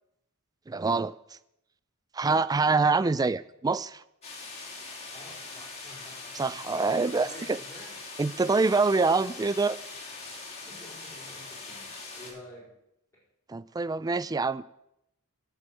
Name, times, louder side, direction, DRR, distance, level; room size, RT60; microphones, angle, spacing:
voice 1, 0.7-1.4 2.1-4.0 6.3-7.6 8.2-9.8 13.5-14.6, right 3 dB, 15° right, 17 dB, 0.3 m, -25 dB
sound 1, 4.2-12.3, left 3 dB, 30° left, 3.1 m, -42 dB
voice 2, 5.1-8.0 8.9-9.3 10.7-12.7, equal, 15° left, -5 dB, 4.4 m, -49 dB
9.6 x 8.0 x 7.2 m, 0.82 s
head